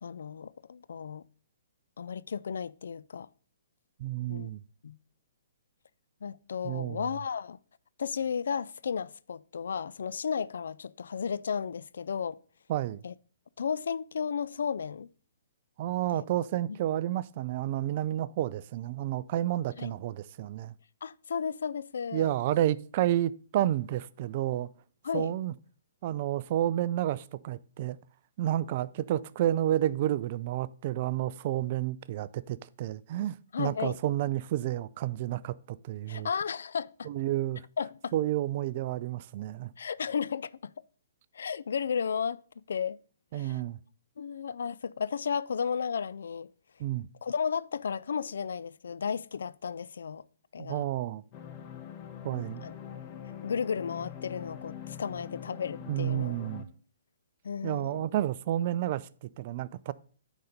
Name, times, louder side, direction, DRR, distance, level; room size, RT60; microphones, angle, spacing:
voice 1, 0.0-1.2 2.0-3.3 4.3-4.5 4.8-5.0 6.2-7.6 8.0-12.4 13.0-13.1 13.6-15.1 16.1-16.2 19.8-19.9 21.0-22.3 25.0-25.3 33.5-34.0 36.1-37.1 37.8-38.1 39.8-40.7 41.3-42.4 42.7-43.0 43.3-43.6 44.2-46.5 47.2-50.2 50.5-50.9 52.6-52.7 53.4-56.3 57.4-58.1, left 6 dB, 70° left, 0.3 m, -33 dB
voice 2, 4.0-4.6 6.6-7.1 12.7-13.0 15.8-20.7 22.1-24.7 25.1-25.5 26.0-28.0 28.4-36.3 37.1-37.6 38.1-39.7 43.3-43.8 46.8-47.1 50.6-51.2 52.2-52.6 55.9-56.7 57.6-59.9, right 13 dB, 45° right, 0.4 m, -30 dB
sound 1, 51.3-56.6, left 9 dB, 35° left, 1.0 m, -43 dB
9.4 x 4.1 x 5.2 m
hypercardioid pair, 135°, 0 cm